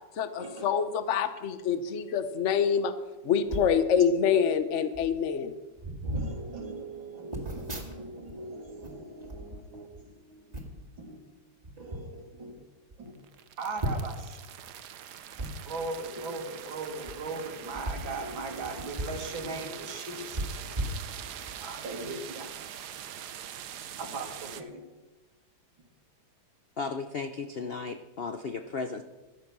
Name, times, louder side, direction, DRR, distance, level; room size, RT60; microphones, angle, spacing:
voice 1, 0.2-2.9 3.2-5.5, left 7 dB, 50° left, 11 dB, 1.0 m, -26 dB
sound 1, 3.5-3.8 4.6-4.7 4.9-5.2 5.8-6.3 7.3-8.3 8.6-10.0 10.5-10.9 11.6-12.0 12.6-12.7 12.9-13.0 13.8-14.3 15.3-15.5 16.9-17.1 17.7-19.2 19.5-19.6 20.3-21.5 22.0-22.2, right 1 dB, 20° right, 2.1 m, -36 dB
voice 2, 6.0-10.7 11.0-11.2 11.8-12.7 13.0-13.1 13.6-14.4 15.7-20.8 21.6-22.5 24.0-24.9, right 3 dB, 90° right, 2 dB, 3.1 m, -39 dB
sound 2, 13.1-24.6, right 9 dB, 65° right, 1.3 m, -43 dB
voice 3, 26.8-29.0, left 4 dB, 85° left, 7 dB, 0.5 m, -35 dB
15.0 x 12.0 x 6.1 m, 1.1 s
omnidirectional pair, 2.1 m